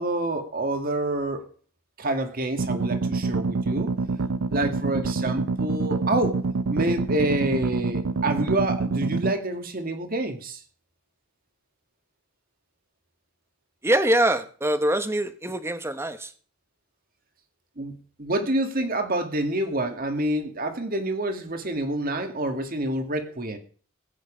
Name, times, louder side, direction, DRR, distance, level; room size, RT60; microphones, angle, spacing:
voice 1, 0.0-1.5 2.0-3.9 4.5-6.4 6.7-10.6 17.8-23.6, right 1 dB, 45° right, 7 dB, 1.9 m, -27 dB
sound 1, 2.6-9.3, right 3 dB, 75° right, 0.6 m, -27 dB
voice 2, 13.8-16.3, right 1 dB, 10° right, 10 dB, 1.1 m, -24 dB
15.5 x 9.3 x 5.1 m, 0.43 s
head